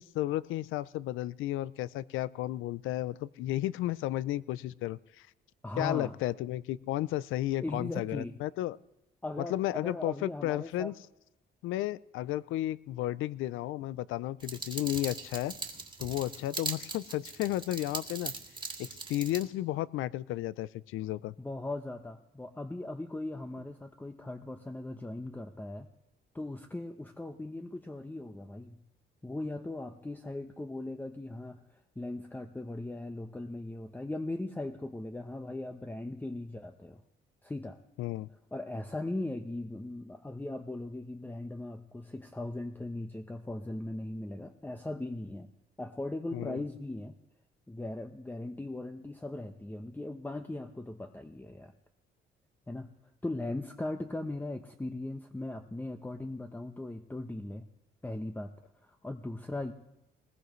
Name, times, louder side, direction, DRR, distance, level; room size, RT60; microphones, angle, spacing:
voice 1, 0.0-5.0 5.8-8.8 9.4-10.9 11.6-15.5 16.0-18.3 18.8-21.3 38.0-38.3 46.3-46.6, left 15 dB, 90° left, 19 dB, 0.5 m, -33 dB
voice 2, 5.6-6.2 7.6-8.4 9.2-10.9 21.4-25.9 26.3-28.8 29.2-37.0 37.4-37.8 38.5-45.5 45.8-47.1 47.7-51.7 52.7-52.9 53.2-57.7 58.0-58.5 58.8-59.7, left 2 dB, 10° left, 5 dB, 0.9 m, -39 dB
sound 1, 14.4-19.4, right 3 dB, 25° right, 2.0 m, -40 dB
20.5 x 18.5 x 3.1 m, 0.88 s
cardioid pair, 90°, 20 cm